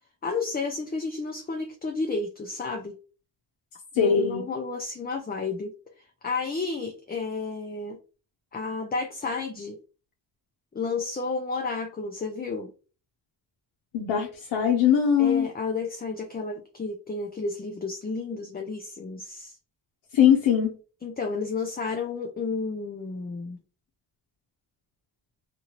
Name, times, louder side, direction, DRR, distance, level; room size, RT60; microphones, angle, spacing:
voice 1, 0.2-2.9 3.9-5.7 6.2-8.0 8.5-9.8 10.7-12.7 15.2-19.6 21.0-23.6, left 4 dB, 20° left, 3 dB, 0.6 m, -31 dB
voice 2, 3.9-4.4 13.9-15.5 20.1-20.8, left 8 dB, 75° left, 0 dB, 0.8 m, -21 dB
2.7 x 2.6 x 3.0 m, 0.36 s
supercardioid pair, 60°, 47 cm